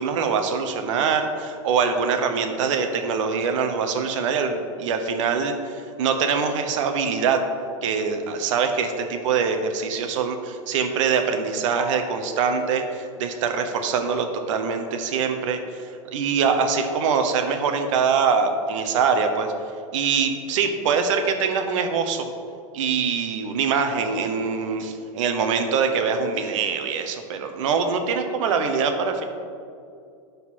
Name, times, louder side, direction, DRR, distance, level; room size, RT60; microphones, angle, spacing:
voice 1, 0.0-7.4 7.8-19.5 19.9-22.3 22.7-29.2, right 5 dB, 70° right, 6 dB, 1.0 m, -24 dB
12.0 x 4.0 x 4.2 m, 2.4 s
hypercardioid pair, 115°, 17 cm